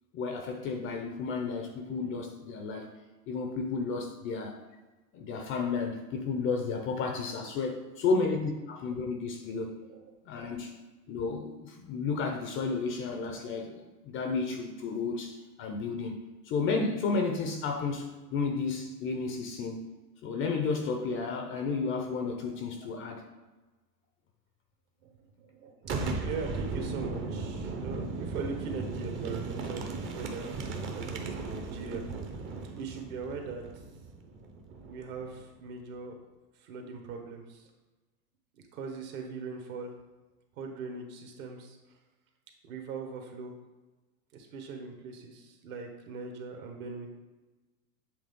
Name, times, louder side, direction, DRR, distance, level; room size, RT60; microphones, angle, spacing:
voice 1, 0.1-2.9 3.3-4.6 5.1-9.8 10.3-10.8 11.1-19.8 20.2-23.2, left 4 dB, 25° left, 4 dB, 0.5 m, -32 dB
voice 2, 9.5-10.0 10.3-10.5 22.4-22.5 22.8-22.9 25.0-25.8 26.2-30.6 30.9-32.0 32.7-33.6 34.8-36.1 36.6-37.7 38.7-39.9 40.6-41.8 42.6-43.5 44.3-47.1, right 4 dB, 55° right, 3 dB, 1.4 m, -40 dB
Boom, 25.8-35.4, right 3 dB, 25° right, 0.7 m, -37 dB
7.8 x 3.4 x 3.6 m, 1.2 s
hypercardioid pair, 110°, 50 cm